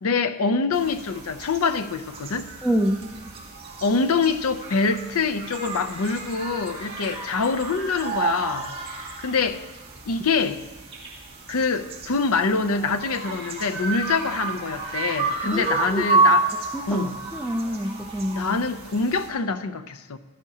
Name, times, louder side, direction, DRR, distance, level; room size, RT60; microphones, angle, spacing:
voice 1, 0.0-2.5 3.8-8.7 9.2-9.6 10.1-10.6 11.5-16.5 16.9-17.2 18.3-20.2, left 4 dB, 80° left, 0.6 m, -25 dB
sound 1, 0.7-19.3, right 3 dB, 25° right, 2.2 m, -30 dB
voice 2, 2.6-3.1 15.5-16.0 16.7-18.6, equal, ahead, 0.4 m, -26 dB
14.5 x 13.0 x 2.8 m
head